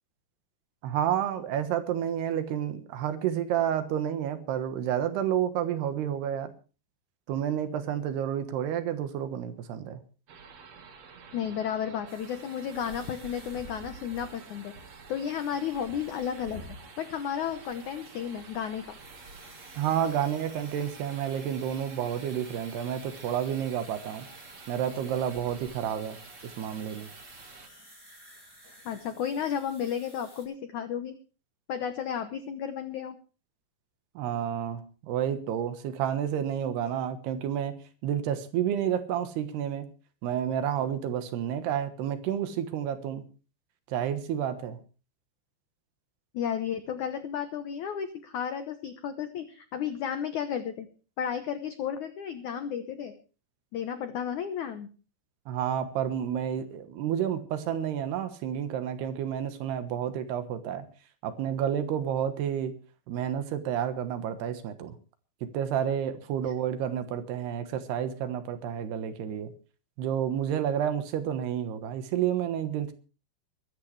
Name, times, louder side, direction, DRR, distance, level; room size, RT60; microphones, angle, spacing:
voice 1, 0.8-6.5 7.3-10.0 19.8-24.3 24.7-26.2 26.4-27.1 34.2-39.9 40.2-43.2 43.9-44.8 55.5-60.9 61.2-62.7 63.1-65.0 65.4-69.5 70.0-72.9, right 9 dB, 70° right, 10 dB, 3.2 m, -30 dB
sound 1, 10.3-27.7, right 4 dB, 50° right, 2.3 m, -49 dB
voice 2, 11.3-14.7 15.1-16.6 17.0-19.0 28.9-31.2 31.7-33.2 46.3-50.9 51.2-53.1 53.7-54.9 66.5-66.6, left 8 dB, 80° left, 9 dB, 1.7 m, -33 dB
sound 2, 12.1-30.4, equal, 5° right, 7.3 m, -53 dB
23.0 x 12.5 x 3.3 m, 0.36 s
omnidirectional pair, 5.1 m